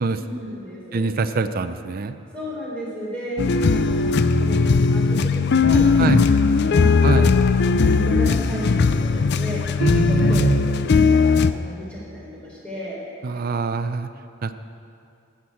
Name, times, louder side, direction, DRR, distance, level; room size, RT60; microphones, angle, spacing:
voice 1, 0.1-1.1 2.3-3.4 3.7-6.3 6.6-7.3 7.6-9.6 10.0-10.5 10.9-13.0, equal, 5° left, -6 dB, 3.9 m, -33 dB
voice 2, 0.9-2.1 6.0-6.2 7.0-7.3 9.8-10.7 13.2-14.1 14.4-14.5, right 4 dB, 45° right, 10 dB, 0.5 m, -24 dB
sound 1, 3.4-11.5, left 4 dB, 50° left, 0.4 m, -18 dB
12.5 x 7.3 x 8.5 m, 2.5 s
head